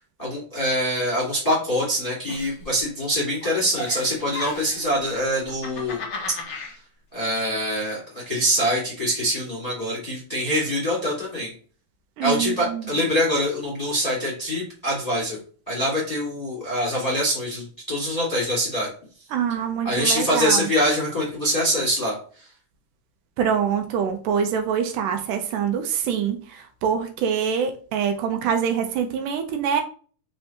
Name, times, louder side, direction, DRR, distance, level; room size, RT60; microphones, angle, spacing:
voice 1, 0.2-6.0 6.5-6.7 7.1-11.5 12.2-15.4 15.7-18.9 19.8-22.2, equal, 15° left, -5 dB, 1.3 m, -24 dB
Giggle, 2.3-3.1 3.4-4.9 5.4-6.7, left 3 dB, 85° left, 0.9 m, -34 dB
voice 2, 12.2-12.9 19.3-20.6 23.4-29.8, right 7 dB, 85° right, 5 dB, 2.1 m, -25 dB
5.4 x 3.3 x 2.9 m, 0.41 s
omnidirectional pair, 3.8 m